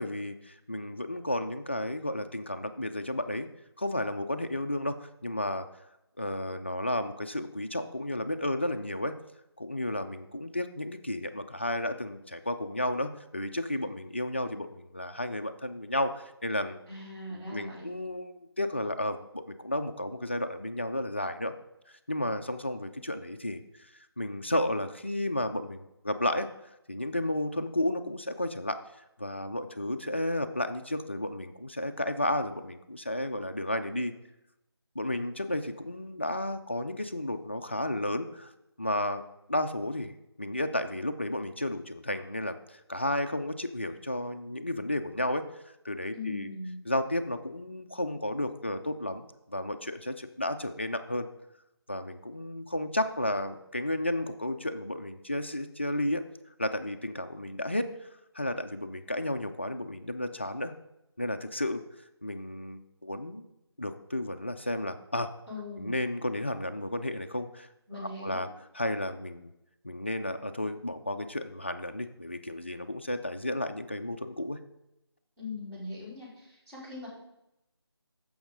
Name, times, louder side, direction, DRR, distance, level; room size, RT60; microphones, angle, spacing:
voice 1, 0.0-3.5 3.8-5.7 6.2-9.2 9.6-16.8 17.3-21.5 22.1-26.5 26.9-28.8 29.2-34.1 35.0-38.5 38.8-39.2 39.5-40.1 40.4-46.5 46.9-51.3 51.9-56.2 56.6-58.1 58.3-60.7 61.2-61.8 62.2-63.4 63.8-65.3 65.8-68.5 68.7-69.5 69.8-74.6, left 1 dB, 25° left, 8 dB, 0.4 m, -32 dB
voice 2, 16.9-17.9 46.1-46.8 65.5-65.9 67.9-68.5 75.4-77.1, left 2 dB, 10° right, -12 dB, 3.1 m, -40 dB
14.0 x 5.4 x 3.8 m, 0.87 s
figure-of-eight pair, 160°, 14 cm